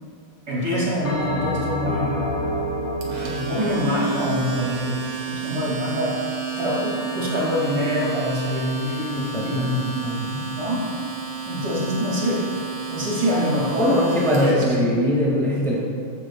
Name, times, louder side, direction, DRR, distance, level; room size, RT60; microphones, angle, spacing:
voice 1, 0.5-2.1 3.1-6.2 6.6-10.8 11.5-12.4 12.9-14.0 14.4-14.8, equal, 55° right, -5 dB, 3.2 m, -25 dB
Bell, 1.0-5.6, equal, 50° left, 2.2 m, -29 dB
Domestic sounds home sounds, 3.0-14.6, right 5 dB, 80° right, 2.4 m, -32 dB
voice 2, 9.3-10.3 13.8-15.8, equal, ahead, -5 dB, 1.8 m, -22 dB
14.5 x 9.6 x 2.4 m, 2.5 s
omnidirectional pair, 2.3 m